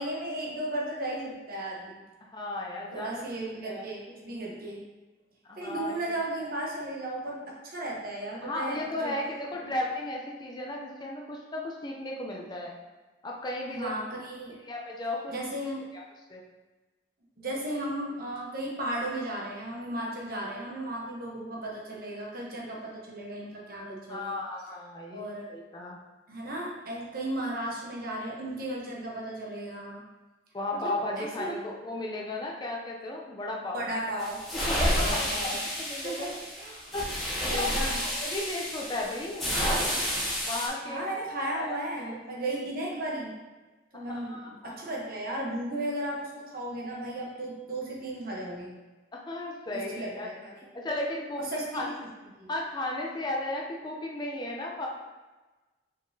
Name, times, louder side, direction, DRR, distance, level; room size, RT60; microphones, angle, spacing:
voice 1, 0.0-2.0 2.9-4.8 5.6-9.2 9.6-9.8 13.7-14.6 15.3-15.8 17.4-24.4 25.1-25.5 26.3-30.0 30.7-31.6 33.7-34.4 34.9-35.6 36.0-36.9 37.5-38.0 40.8-43.4 43.9-48.7 49.7-50.6 51.4-51.7 52.4-52.5, right 1 dB, 50° right, -3 dB, 1.0 m, -35 dB
voice 2, 2.2-3.1 3.6-3.8 5.5-6.1 8.4-12.7 13.2-13.9 14.7-15.3 15.9-16.0 16.3-16.4 24.1-25.2 25.5-26.0 30.5-33.8 34.7-36.3 36.9-37.1 37.4-37.6 38.0-39.8 40.4-41.1 41.4-42.2 43.9-44.9 49.1-50.3 50.7-52.0 52.5-54.9, left 1 dB, 25° left, -1 dB, 0.5 m, -35 dB
sound 1, 34.2-40.7, equal, ahead, 1.2 m, -30 dB
5.0 x 3.8 x 2.7 m, 1.2 s
head